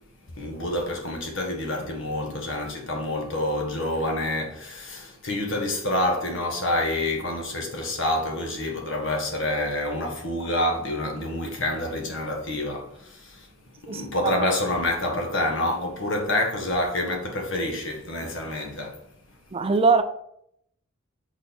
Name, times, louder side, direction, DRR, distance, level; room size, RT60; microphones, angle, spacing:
voice 1, 0.4-13.5 13.8-19.0, left 1 dB, 60° left, 1.6 m, -27 dB
voice 2, 13.9-14.3 19.5-20.0, right 4 dB, 25° right, 0.4 m, -22 dB
6.4 x 4.0 x 5.4 m
head